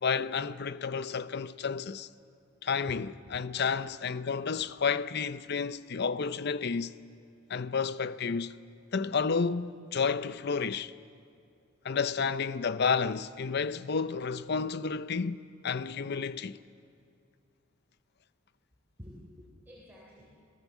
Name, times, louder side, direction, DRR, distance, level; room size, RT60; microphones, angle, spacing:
voice 1, 0.0-2.1 2.6-6.9 7.5-8.5 8.9-10.9 11.8-16.6, left 5 dB, 50° left, 0.6 m, -31 dB
voice 2, 3.3-3.8 19.0-20.3, equal, 10° right, 3.6 m, -51 dB
28.5 x 19.0 x 7.3 m
head